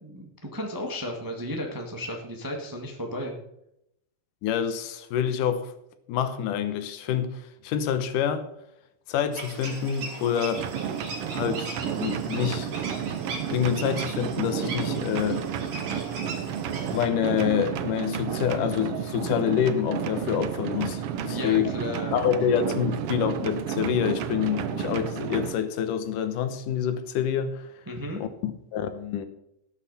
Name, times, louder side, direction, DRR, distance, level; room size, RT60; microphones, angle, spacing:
voice 1, 0.0-3.3 21.3-22.1 22.5-22.6 27.9-28.2, left 1 dB, 10° right, 0.9 m, -34 dB
voice 2, 4.4-5.7 6.1-8.5 9.1-10.7 11.3-12.8 13.5-15.4 16.9-21.7 22.1-27.7 28.2-29.3, left 9 dB, 90° left, 2.6 m, -27 dB
sound 1, 9.3-17.1, right 3 dB, 60° right, 3.7 m, -39 dB
sound 2, 10.6-25.5, right 9 dB, 80° right, 1.3 m, -31 dB
18.0 x 8.0 x 4.2 m
omnidirectional pair, 3.6 m